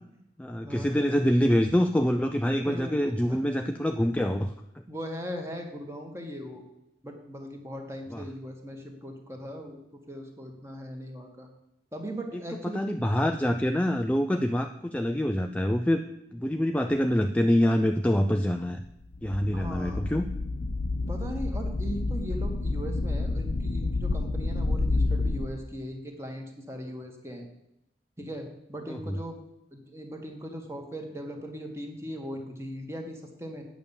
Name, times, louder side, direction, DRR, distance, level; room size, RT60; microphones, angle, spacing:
voice 1, 0.4-4.5 8.1-8.2 12.7-16.0 16.3-18.8 19.2-20.3 28.9-29.2, equal, 10° left, 5 dB, 0.4 m, -25 dB
voice 2, 2.6-3.4 4.9-6.6 7.0-11.5 11.9-12.8 19.5-20.0 21.1-27.5 28.2-29.4 29.7-33.6, equal, 15° right, 3 dB, 1.6 m, -39 dB
sound 1, 18.8-18.9 19.1-25.5, left 2 dB, 80° left, 0.8 m, -29 dB
9.2 x 6.9 x 7.1 m, 0.84 s
head